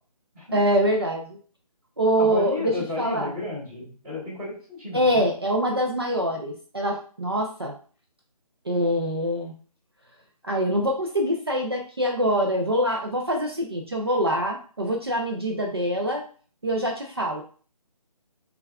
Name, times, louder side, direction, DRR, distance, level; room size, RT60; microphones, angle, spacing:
voice 1, 0.5-1.4 2.0-3.3 4.9-7.7 8.7-9.5 10.4-16.2 16.6-17.4, equal, 40° right, 2 dB, 0.4 m, -24 dB
voice 2, 2.2-5.3, left 2 dB, 5° right, -18 dB, 0.8 m, -33 dB
6.6 x 2.3 x 2.3 m, 0.42 s
hypercardioid pair, 180°, 20 cm